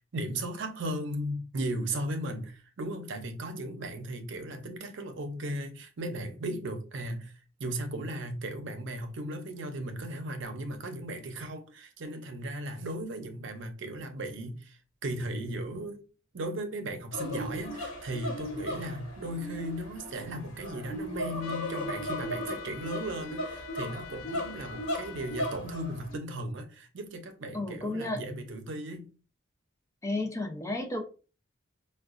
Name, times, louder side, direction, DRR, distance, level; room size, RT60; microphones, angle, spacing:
voice 1, 0.0-7.3 7.6-16.0 16.3-29.1, right 1 dB, 65° right, 0.6 m, -36 dB
sound 1, 17.1-26.2, equal, 85° left, 1.1 m, -37 dB
sound 2, 21.4-25.6, left 10 dB, 65° left, 0.4 m, -47 dB
voice 2, 27.5-28.3 30.0-31.0, left 2 dB, 15° left, 0.5 m, -32 dB
4.6 x 2.2 x 2.4 m
head